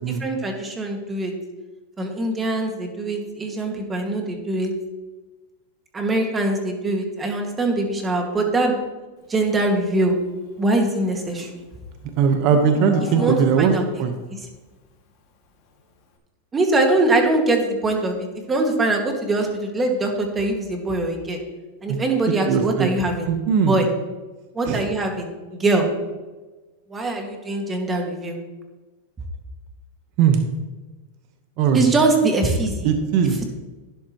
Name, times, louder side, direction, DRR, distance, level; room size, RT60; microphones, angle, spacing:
voice 1, 0.1-1.3 2.0-4.7 5.9-8.8 9.3-10.2 10.6-11.5 13.2-13.8 14.3-14.4 16.5-21.4 21.8-23.3 23.6-23.9 24.5-25.9 26.9-28.4 31.7-32.9 33.2-33.4, right 2 dB, 15° right, 3 dB, 1.9 m, -22 dB
Livestock farm animals working animals, 10.6-13.9, left 4 dB, 45° left, 2.2 m, -36 dB
voice 2, 12.2-13.7 14.0-14.1 21.9-22.0 22.5-22.9 23.3-23.7 24.7-24.8 30.2-30.4 31.6-31.9 32.8-33.4, right 7 dB, 50° right, 6 dB, 1.1 m, -19 dB
11.5 x 10.5 x 3.1 m, 1.2 s
supercardioid pair, 130°, 0 cm